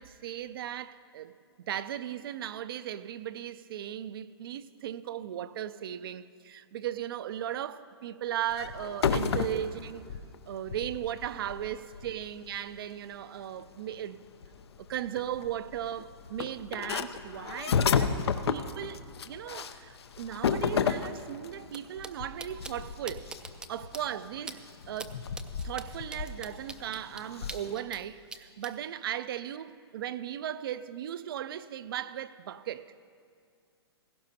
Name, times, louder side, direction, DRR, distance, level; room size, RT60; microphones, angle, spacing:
voice 1, 0.0-10.1 10.5-14.2 14.8-18.2 18.5-23.3 23.7-25.2 25.6-32.9, right 11 dB, 60° right, 0.5 m, -37 dB
sound 1, 8.5-12.8 13.7-13.8 13.9-14.0 14.4-21.6 22.0-27.7, left 6 dB, 75° left, 0.6 m, -32 dB
sound 2, 21.7-21.8 22.0-22.1 22.4-22.7 23.1-23.7 23.9-24.0 24.5-24.6 25.0-25.1 25.4-28.0 28.3-28.7, right 3 dB, 5° right, 0.4 m, -42 dB
17.0 x 15.5 x 2.8 m
hypercardioid pair, 135°, 14 cm